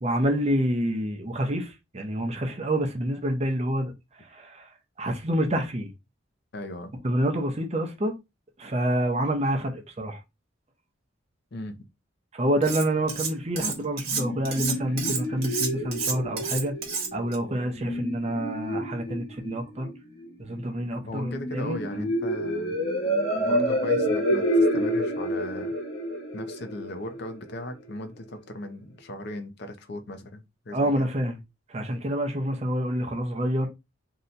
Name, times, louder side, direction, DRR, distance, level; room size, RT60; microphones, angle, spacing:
voice 1, 0.0-3.9 4.2-4.7 5.0-5.9 7.0-8.2 8.6-10.2 12.3-16.7 17.1-19.9 20.4-22.0 30.7-31.4 31.7-33.7, right 1 dB, 30° right, 0.6 m, -27 dB
voice 2, 6.5-6.9 11.5-11.8 21.0-22.8 23.4-25.7 26.3-31.1, left 1 dB, 55° left, 0.5 m, -37 dB
Cutlery silverware, 12.6-13.3 13.6-17.4, right 5 dB, 50° right, 1.1 m, -30 dB
sound 1, 13.7-27.7, equal, 85° left, 1.1 m, -29 dB
2.8 x 2.2 x 3.9 m
head